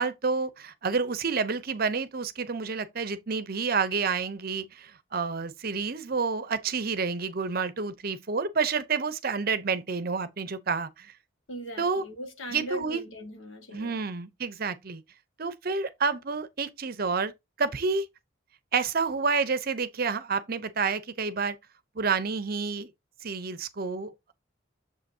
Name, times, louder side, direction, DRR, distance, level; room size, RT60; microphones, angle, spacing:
voice 1, 0.0-11.1 11.8-12.0 12.5-13.0 13.7-15.0 15.4-17.3 17.6-18.1 18.7-21.6 21.9-22.9 23.2-24.3, right 5 dB, 50° right, 0.7 m, -29 dB
voice 2, 11.5-14.0, equal, 85° left, 1.7 m, -39 dB
7.0 x 5.6 x 2.7 m
head